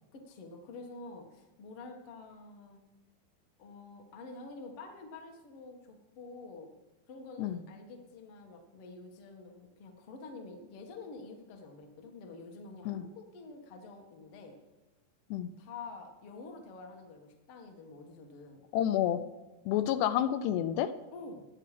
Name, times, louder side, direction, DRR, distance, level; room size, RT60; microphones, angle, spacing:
voice 1, 0.1-2.8 3.6-6.7 7.1-14.6 15.6-18.6 21.1-21.4, left 3 dB, 50° left, 3 dB, 1.7 m, -48 dB
voice 2, 18.7-19.2 19.7-20.9, left 11 dB, 85° left, 12 dB, 2.8 m, -29 dB
16.5 x 9.6 x 5.0 m, 1.1 s
omnidirectional pair, 4.8 m